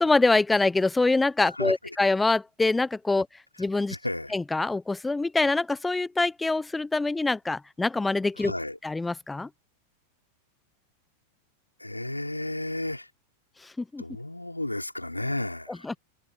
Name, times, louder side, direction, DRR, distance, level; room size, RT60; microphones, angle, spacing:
voice 1, 0.0-3.3 3.6-4.0 4.3-8.5 8.8-9.5 13.6-14.0 15.8-15.9, left 3 dB, 10° left, 1.1 m, -25 dB
voice 2, 3.9-4.4 8.4-8.8 11.8-13.1 14.0-15.9, left 1 dB, 85° left, 4.2 m, -33 dB
figure-of-eight pair, 90°, 0 cm